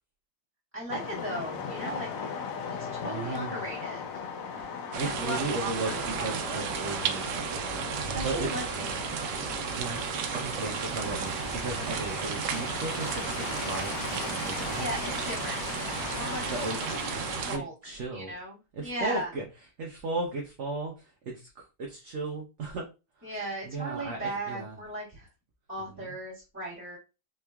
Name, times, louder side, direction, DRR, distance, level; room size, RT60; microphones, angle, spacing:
voice 1, 0.7-2.1 2.8-4.0 5.0-6.3 8.0-9.1 11.9-12.0 14.4-15.6 16.1-16.4 17.5-19.3 23.2-25.3 25.7-27.0, right 1 dB, 10° right, -8 dB, 1.4 m, -37 dB
sound 1, 0.9-17.5, left 6 dB, 65° left, 0.9 m, -38 dB
voice 2, 3.0-3.6 4.6-4.7 5.0-8.5 9.7-14.9 16.5-18.3 18.8-19.4 19.8-22.8 23.2-23.3 23.6-24.8 25.9-26.1, right 3 dB, 55° right, 0 dB, 0.9 m, -36 dB
sound 2, 4.9-17.6, right 7 dB, 90° right, 1.2 m, -34 dB
4.3 x 3.0 x 2.3 m, 0.29 s
omnidirectional pair, 1.8 m